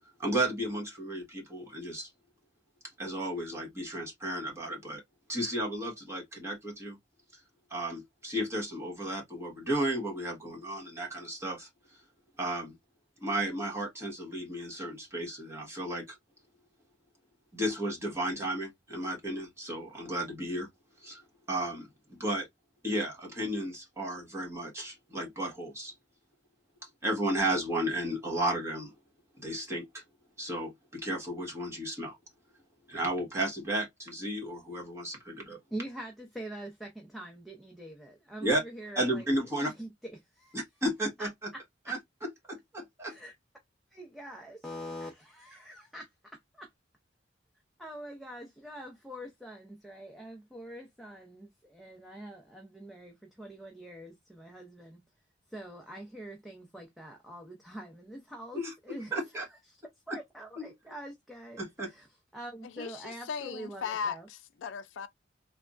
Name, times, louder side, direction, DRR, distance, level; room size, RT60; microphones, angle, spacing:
voice 1, 0.2-2.1 3.0-5.0 5.3-7.0 7.7-11.7 12.4-12.7 13.2-16.2 17.5-20.7 21.0-21.2 21.5-22.5 22.8-25.9 27.0-28.9 29.4-30.0 30.4-32.2 32.9-35.6 38.4-38.6 38.9-39.7 40.5-41.3 41.9-42.0 42.5-43.2 58.5-58.7 59.1-59.4 60.6-60.7 61.6-61.9, right 1 dB, 15° right, 1.3 m, -33 dB
voice 2, 35.7-39.3 39.6-40.6 41.2-41.9 43.1-43.3 43.9-46.7 47.8-55.0 55.5-59.6 60.1-62.1 62.3-64.3, right 1 dB, ahead, 0.5 m, -44 dB
voice 3, 62.6-65.1, left 6 dB, 80° left, 0.4 m, -37 dB
3.4 x 2.1 x 2.4 m
head